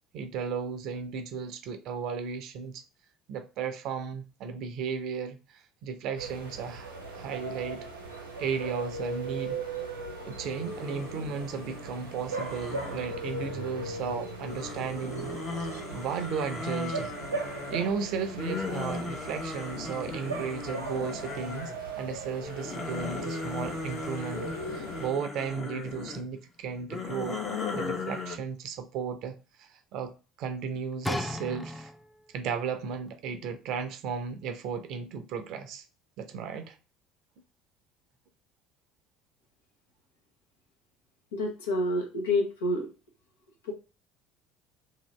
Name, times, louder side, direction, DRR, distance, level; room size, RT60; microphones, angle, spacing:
voice 1, 0.1-2.8 3.3-7.9 8.4-9.6 10.2-15.3 15.6-17.1 17.7-27.4 27.7-30.1 30.4-31.9 32.3-35.8 36.2-36.8, right 6 dB, 55° right, 0.6 m, -35 dB
sound 1, 6.2-25.1, right 3 dB, 90° right, 0.9 m, -38 dB
sound 2, 10.4-13.8 14.4-21.9 22.3-26.2 26.8-28.4, left 3 dB, 40° left, 1.0 m, -38 dB
sound 3, 31.0-32.3 33.1-33.2, left 1 dB, 10° left, 0.4 m, -34 dB
voice 2, 41.3-42.9 43.6-43.7, left 1 dB, 75° left, 0.9 m, -28 dB
2.8 x 2.6 x 3.1 m
figure-of-eight pair, 65°, 0 cm